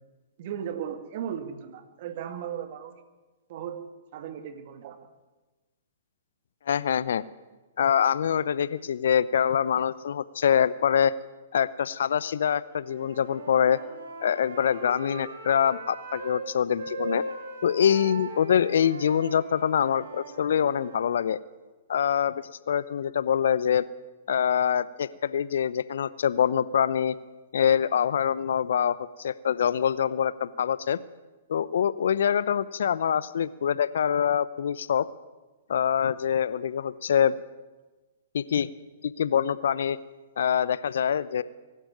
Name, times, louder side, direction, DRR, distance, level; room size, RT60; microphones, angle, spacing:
voice 1, 0.4-2.9 3.5-5.1, right 9 dB, 50° right, 9 dB, 2.2 m, -36 dB
voice 2, 6.7-7.2 7.8-11.1 11.5-13.8 14.2-17.2 17.6-21.4 21.9-23.8 24.3-27.1 27.5-31.0 31.5-35.1 35.7-37.3 38.3-38.7 39.0-40.0 40.4-41.4, left 8 dB, 65° left, 18 dB, 0.7 m, -25 dB
Wind instrument woodwind instrument, 12.8-16.4 16.8-21.0, right 2 dB, 70° right, 3.8 m, -39 dB
23.0 x 12.5 x 9.3 m, 1.2 s
figure-of-eight pair, 120°, 0 cm